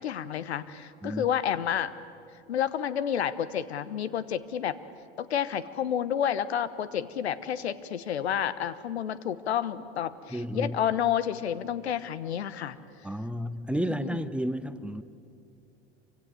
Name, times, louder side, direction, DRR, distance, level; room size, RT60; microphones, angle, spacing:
voice 1, 0.0-1.9 2.5-4.7 5.2-12.8 13.8-14.2, left 9 dB, 75° left, 14 dB, 1.2 m, -30 dB
voice 2, 10.3-10.8 13.0-15.0, equal, 5° right, 12 dB, 1.0 m, -32 dB
27.5 x 25.5 x 8.0 m, 2.6 s
hypercardioid pair, 85°, 32 cm